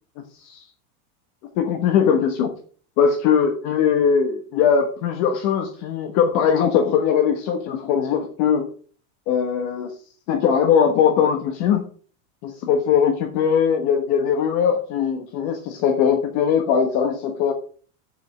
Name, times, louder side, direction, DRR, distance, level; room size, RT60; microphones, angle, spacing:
voice 1, 1.5-2.5 3.0-8.7 9.3-9.9 10.3-11.8 12.4-17.5, left 7 dB, 40° left, 5 dB, 1.2 m, -20 dB
7.6 x 5.4 x 7.3 m, 0.44 s
supercardioid pair, 170°, 43 cm